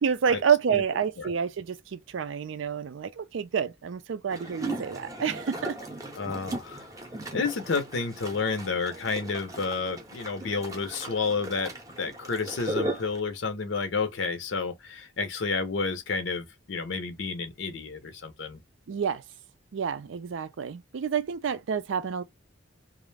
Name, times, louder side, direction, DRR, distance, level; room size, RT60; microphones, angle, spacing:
voice 1, 0.0-5.8 18.9-19.2 19.7-22.2, right 7 dB, 80° right, 0.4 m, -28 dB
sound 1, 4.3-13.2, right 1 dB, 20° right, 0.6 m, -37 dB
voice 2, 6.1-6.9 7.3-11.7 12.0-18.6, left 4 dB, 75° left, 0.6 m, -30 dB
2.4 x 2.0 x 3.1 m
head